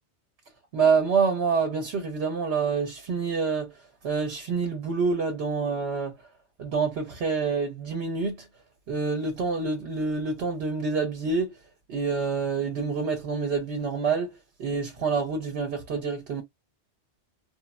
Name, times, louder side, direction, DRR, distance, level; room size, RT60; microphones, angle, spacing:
voice 1, 0.7-6.2 6.6-8.5 8.9-11.6 11.9-16.4, right 5 dB, 70° right, 0.9 m, -27 dB
3.1 x 2.0 x 2.2 m
omnidirectional pair, 1.2 m